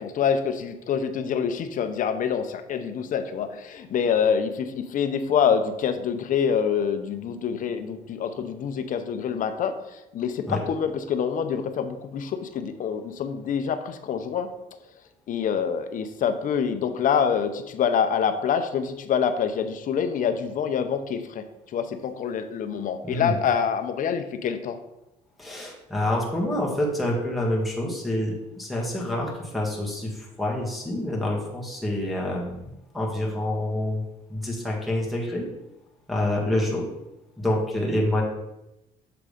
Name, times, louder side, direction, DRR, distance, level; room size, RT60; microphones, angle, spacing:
voice 1, 0.0-14.5 15.3-24.8, left 7 dB, 50° left, 9 dB, 0.7 m, -26 dB
voice 2, 23.0-23.3 25.4-32.7 32.9-34.0 34.3-35.5 36.1-36.9 37.4-38.2, left 1 dB, ahead, -4 dB, 1.7 m, -27 dB
6.9 x 3.7 x 5.0 m, 0.90 s
cardioid pair, 110°, 17 cm